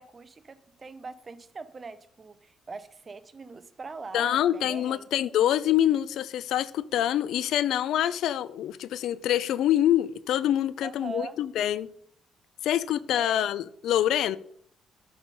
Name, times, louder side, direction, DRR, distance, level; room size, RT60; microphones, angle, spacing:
voice 1, 0.0-5.1 10.8-11.4 13.1-13.4, right 4 dB, 35° right, 0.7 m, -41 dB
voice 2, 4.1-11.9 12.6-14.4, left 11 dB, 80° left, 0.4 m, -25 dB
8.1 x 4.8 x 5.4 m
cardioid pair, 90°, 0 cm